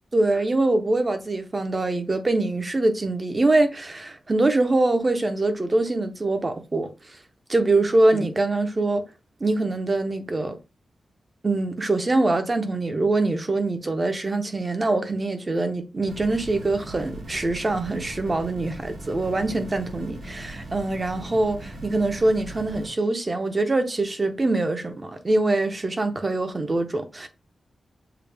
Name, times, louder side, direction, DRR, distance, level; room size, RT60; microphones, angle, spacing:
voice 1, 0.1-6.9 7.5-9.0 9.4-10.5 11.4-27.3, right 2 dB, 25° right, 0.7 m, -24 dB
sound 1, 16.1-22.9, right 1 dB, 75° right, 2.3 m, -39 dB
6.7 x 2.3 x 3.4 m
wide cardioid pair, 160°, 0 cm